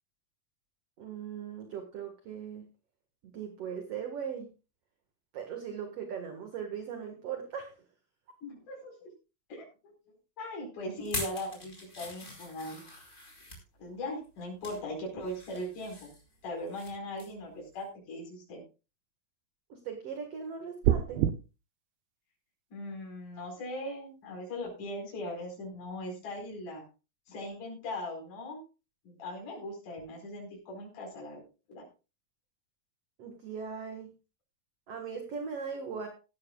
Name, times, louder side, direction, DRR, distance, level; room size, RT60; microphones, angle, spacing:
voice 1, 1.0-2.6 3.3-4.5 5.3-7.7 19.7-21.3 33.2-34.1 34.9-36.1, right 7 dB, 50° right, 4 dB, 2.2 m, -39 dB
voice 2, 8.4-9.1 9.5-9.7 10.4-12.8 13.8-16.1 16.4-18.6 22.7-26.8 27.3-28.6 29.0-31.4 31.7-31.8, left 1 dB, 55° left, -2 dB, 6.1 m, -39 dB
sound 1, 11.0-13.6 14.2-14.8 15.2-16.9 17.2-17.4 17.8-17.9, left 2 dB, 20° left, 4.8 m, -42 dB
sound 2, 20.8-21.3, right 11 dB, 80° right, 2.5 m, -24 dB
17.0 x 13.5 x 2.4 m, 0.32 s
omnidirectional pair, 4.4 m